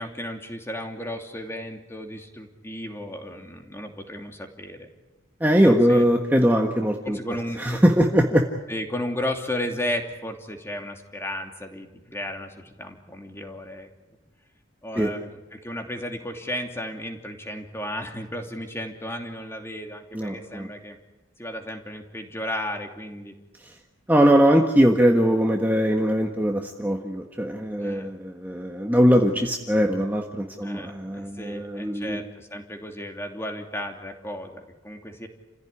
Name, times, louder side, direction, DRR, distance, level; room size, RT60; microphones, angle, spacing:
voice 1, 0.0-4.9 5.6-6.1 7.0-7.8 8.7-13.9 14.8-21.0 21.4-23.4 27.8-28.1 30.6-35.3, left 1 dB, 15° left, 3 dB, 2.9 m, -34 dB
voice 2, 5.4-7.2 7.6-8.4 14.9-15.1 20.1-20.7 24.1-32.2, equal, 10° right, 1 dB, 1.5 m, -21 dB
30.0 x 16.0 x 10.0 m, 1.1 s
head